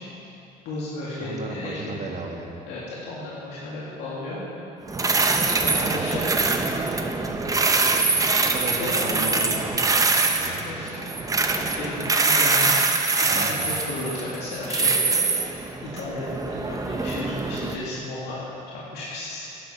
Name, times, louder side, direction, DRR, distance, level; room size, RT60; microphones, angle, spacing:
voice 1, 0.6-2.1 2.7-4.4 5.6-6.8 7.5-7.7 8.8-9.7 10.6-12.9 13.2-15.2 15.8-18.4 18.7-19.5, left 2 dB, 90° left, -7 dB, 2.2 m, -34 dB
voice 2, 1.2-2.5 5.6-6.1 8.4-10.7 13.3-13.7, right 3 dB, 45° right, 1 dB, 1.6 m, -35 dB
sound 1, 4.9-17.8, right 3 dB, 20° right, 0.8 m, -23 dB
12.0 x 11.0 x 4.3 m, 2.8 s
cardioid pair, 110°, 17 cm